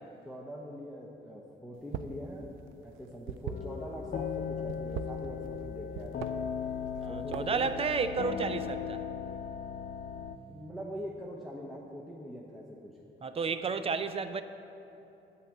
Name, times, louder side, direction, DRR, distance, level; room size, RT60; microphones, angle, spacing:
voice 1, 0.3-2.5 2.8-6.4 7.1-7.7 10.5-12.9, equal, ahead, -3 dB, 0.9 m, -43 dB
sound 1, 1.8-2.2 2.5-4.1 4.6-5.6 5.9-6.3 6.8-7.7, right 10 dB, 85° right, 0.4 m, -40 dB
sound 2, 3.5-10.4, left 7 dB, 50° left, 0.5 m, -37 dB
voice 2, 7.0-9.0 13.2-14.4, right 5 dB, 30° right, 11 dB, 0.5 m, -32 dB
8.5 x 5.6 x 7.8 m, 2.9 s
cardioid pair, 90°, 20 cm